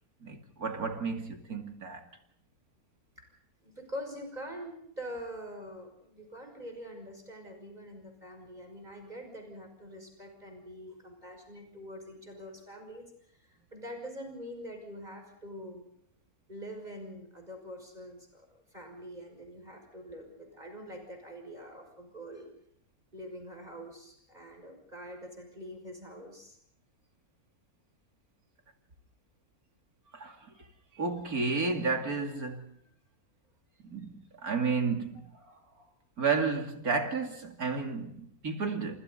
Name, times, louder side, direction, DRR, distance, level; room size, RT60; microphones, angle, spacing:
voice 1, 0.2-2.1 30.1-30.4 31.0-32.7 33.8-35.3 36.2-39.0, right 4 dB, 80° right, 3.2 m, -32 dB
voice 2, 3.6-13.1 13.4-15.9 16.5-22.5 23.1-26.6, equal, 30° right, 6.1 m, -44 dB
30.0 x 27.0 x 4.1 m
omnidirectional pair, 1.5 m